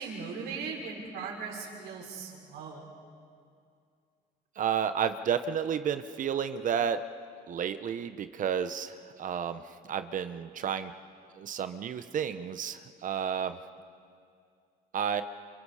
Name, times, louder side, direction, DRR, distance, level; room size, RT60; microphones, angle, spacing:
voice 1, 0.0-2.9, right 5 dB, 80° right, -1 dB, 6.0 m, -39 dB
voice 2, 4.6-7.0 7.5-10.9 11.3-13.6 14.9-15.2, right 8 dB, 50° right, 10 dB, 1.0 m, -31 dB
30.0 x 28.5 x 5.0 m, 2.3 s
cardioid pair, 110°, 17 cm